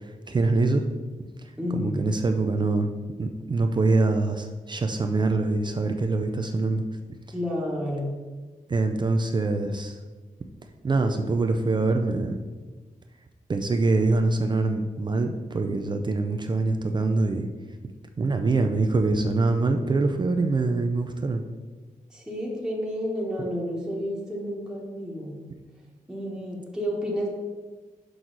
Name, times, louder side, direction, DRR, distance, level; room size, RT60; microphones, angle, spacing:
voice 1, 0.3-0.9 1.7-2.9 3.2-6.8 8.7-10.0 10.8-12.4 13.5-17.5 18.2-21.4, right 3 dB, 35° right, 5 dB, 0.4 m, -24 dB
voice 2, 1.6-2.1 7.3-8.2 22.1-25.4 26.1-27.3, equal, 5° right, -4 dB, 1.1 m, -30 dB
6.2 x 6.0 x 3.9 m, 1.3 s
wide cardioid pair, 170°, 14 cm